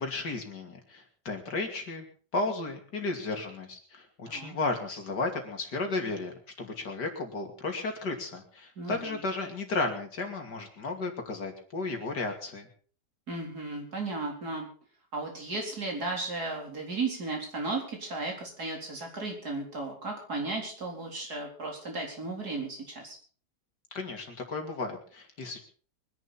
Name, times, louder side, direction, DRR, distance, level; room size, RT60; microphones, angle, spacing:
voice 1, 0.0-2.1 2.3-12.7 23.9-25.6, left 3 dB, 75° left, 4 dB, 3.3 m, -34 dB
voice 2, 8.8-9.2 13.3-14.7 15.1-23.2, right 3 dB, 60° right, 0 dB, 4.8 m, -35 dB
24.0 x 11.0 x 4.4 m, 0.42 s
omnidirectional pair, 1.8 m